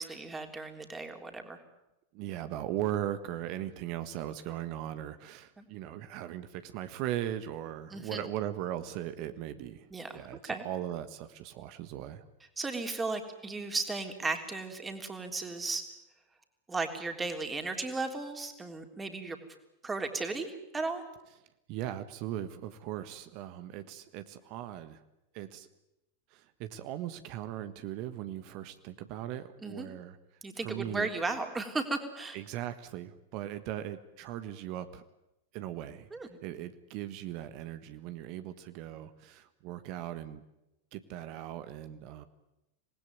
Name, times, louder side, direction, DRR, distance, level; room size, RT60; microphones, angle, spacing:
voice 1, 0.0-1.6 5.6-5.7 7.9-8.2 9.9-10.7 12.6-15.8 16.7-19.4 19.8-21.0 29.6-29.9 30.4-32.4 36.1-36.3, right 3 dB, 15° right, 5 dB, 3.5 m, -35 dB
voice 2, 2.1-12.2 21.7-25.0 25.3-25.7 26.3-30.2 30.5-31.1 32.3-35.0 35.5-36.1 36.4-40.4 40.9-42.3, right 12 dB, 45° right, 11 dB, 1.5 m, -38 dB
26.5 x 20.0 x 9.5 m, 0.91 s
figure-of-eight pair, 90°, 0 cm